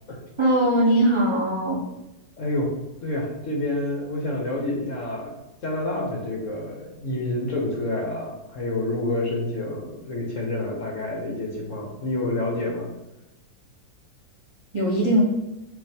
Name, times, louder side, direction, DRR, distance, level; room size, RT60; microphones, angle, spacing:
voice 1, 0.4-1.8 14.7-15.2, right 1 dB, 50° right, -6 dB, 0.3 m, -20 dB
voice 2, 2.4-2.7 3.0-5.3 5.6-12.9, left 2 dB, 55° left, -1 dB, 0.9 m, -28 dB
4.4 x 2.5 x 4.2 m, 0.95 s
omnidirectional pair, 1.9 m